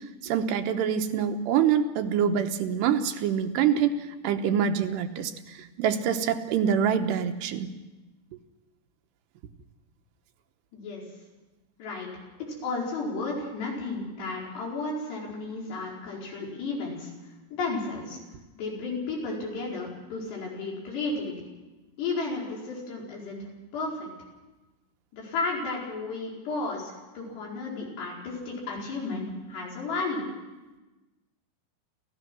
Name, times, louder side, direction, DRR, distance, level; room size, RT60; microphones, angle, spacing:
voice 1, 0.0-7.7, right 8 dB, 90° right, 7 dB, 3.2 m, -26 dB
voice 2, 10.7-11.0 11.8-12.1 12.4-17.1 17.5-18.2 18.6-21.5 22.0-23.4 23.7-24.1 25.1-30.3, left 3 dB, 90° left, -3 dB, 6.8 m, -33 dB
29.5 x 14.5 x 6.2 m, 1.1 s
omnidirectional pair, 4.7 m